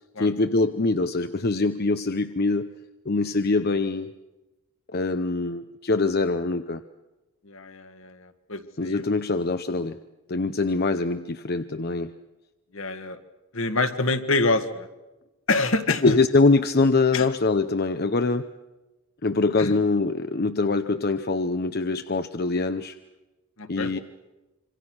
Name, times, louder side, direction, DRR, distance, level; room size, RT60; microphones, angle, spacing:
voice 1, 0.2-2.7 3.0-4.1 4.9-6.8 8.8-10.0 10.3-12.1 16.0-18.5 19.2-23.0 23.7-24.0, left 3 dB, 45° left, 9 dB, 0.7 m, -23 dB
voice 2, 7.5-9.0 12.7-13.2 13.5-14.9 15.5-16.2 17.1-17.2 19.6-19.8 23.6-24.0, left 3 dB, 65° left, 8 dB, 1.8 m, -26 dB
26.5 x 25.5 x 6.2 m, 1.0 s
head